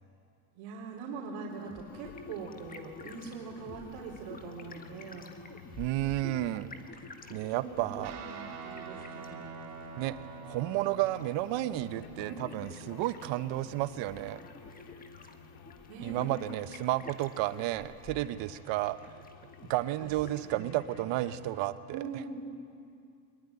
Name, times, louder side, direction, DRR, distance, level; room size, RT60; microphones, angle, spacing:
voice 1, 0.6-5.3 7.5-9.7 12.2-12.3 15.9-16.3 20.0-20.1 20.5-20.8 21.9-22.3, right 5 dB, 85° right, -5 dB, 3.8 m, -42 dB
sound 1, 1.5-20.5, left 3 dB, 20° left, 1.4 m, -51 dB
sound 2, 1.9-21.6, left 7 dB, 85° left, 2.2 m, -55 dB
voice 2, 5.8-6.7 7.3-8.1 10.0-10.2 10.5-14.4 16.0-19.2 19.7-22.0, right 15 dB, 65° right, 12 dB, 1.0 m, -32 dB
Guitar, 8.0-15.7, right 4 dB, 45° right, 3.6 m, -47 dB
23.5 x 21.5 x 9.7 m, 2.4 s
cardioid pair, 150°, 47 cm